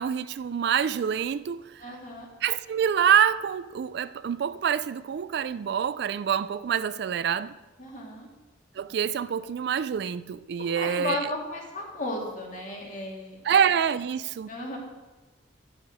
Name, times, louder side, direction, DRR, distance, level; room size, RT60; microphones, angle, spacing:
voice 1, 0.0-1.8 2.4-7.5 8.8-11.3 13.4-14.5, right 8 dB, 65° right, 0.3 m, -26 dB
voice 2, 1.8-2.3 7.8-8.3 10.8-13.4 14.5-14.8, left 2 dB, 45° left, 2.1 m, -34 dB
10.5 x 6.6 x 5.1 m
head